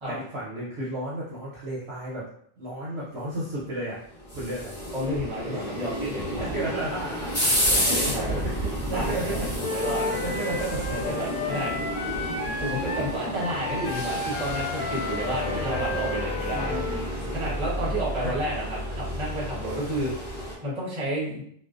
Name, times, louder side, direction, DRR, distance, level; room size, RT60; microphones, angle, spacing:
voice 1, 0.1-2.3 2.6-4.0 4.3-4.8 5.5-5.7 6.4-9.5 9.8-11.0 11.5-11.6 15.5-15.9 16.5-17.1 18.2-18.3, right 1 dB, 60° right, -6 dB, 0.8 m, -33 dB
sound 1, 3.9-20.5, equal, 30° left, 1.0 m, -31 dB
voice 2, 4.9-6.7 7.4-10.1 10.9-11.7 12.6-21.4, right 1 dB, 25° right, -6 dB, 0.8 m, -31 dB
Wind instrument woodwind instrument, 9.6-17.1, left 3 dB, 70° left, 0.9 m, -32 dB
2.4 x 2.1 x 2.4 m, 0.65 s
omnidirectional pair, 1.4 m